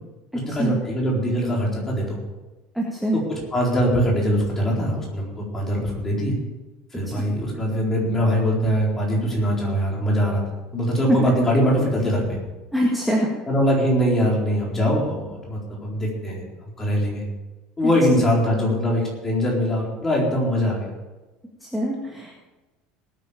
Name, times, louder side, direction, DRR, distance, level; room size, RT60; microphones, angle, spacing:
voice 1, 0.3-2.2 3.1-6.3 6.9-10.4 10.7-12.4 13.5-16.4 16.8-17.2 17.8-20.9, equal, 15° left, -3 dB, 4.1 m, -22 dB
voice 2, 2.7-3.2 7.1-7.2 11.1-11.3 12.7-13.3 17.8-17.9 21.6-22.5, equal, ahead, -4 dB, 1.8 m, -23 dB
19.5 x 9.2 x 5.1 m, 1.1 s
cardioid pair, 160°, 3 cm